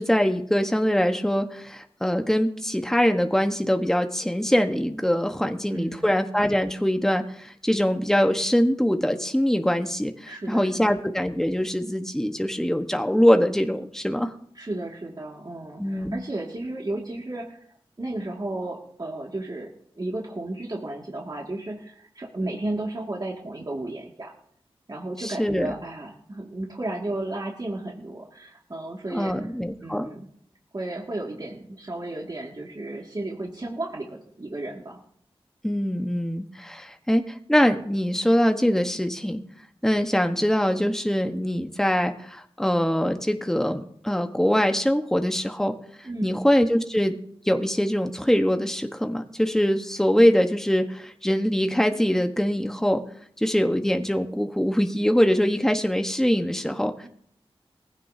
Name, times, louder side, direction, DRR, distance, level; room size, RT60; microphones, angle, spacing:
voice 1, 0.0-14.3 15.8-16.2 25.2-25.7 29.1-30.1 35.6-39.4 39.8-45.7 46.2-47.2 47.4-53.0 53.4-56.9, equal, 5° left, 5 dB, 1.3 m, -23 dB
voice 2, 5.7-6.2 10.3-11.0 14.6-17.6 18.0-24.3 24.9-29.3 29.8-30.3 30.7-35.0 46.0-46.4, right 2 dB, 40° right, -2 dB, 2.3 m, -33 dB
19.0 x 15.5 x 2.8 m, 0.67 s
cardioid pair, 45°, 10 cm